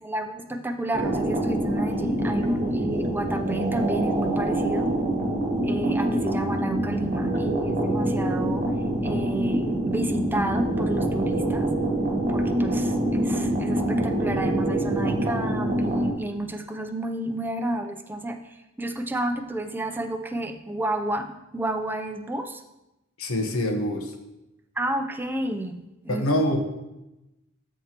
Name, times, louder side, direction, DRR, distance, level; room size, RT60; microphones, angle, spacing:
voice 1, 0.0-4.9 5.6-8.6 9.0-11.7 12.3-22.6 24.8-25.8 26.0-26.2, right 1 dB, 10° right, 6 dB, 0.5 m, -31 dB
sound 1, 0.9-16.1, right 1 dB, 40° right, 1.1 m, -25 dB
voice 2, 23.2-24.1 26.1-26.6, left 1 dB, 85° left, 5 dB, 1.1 m, -25 dB
13.0 x 4.6 x 2.9 m, 0.95 s
head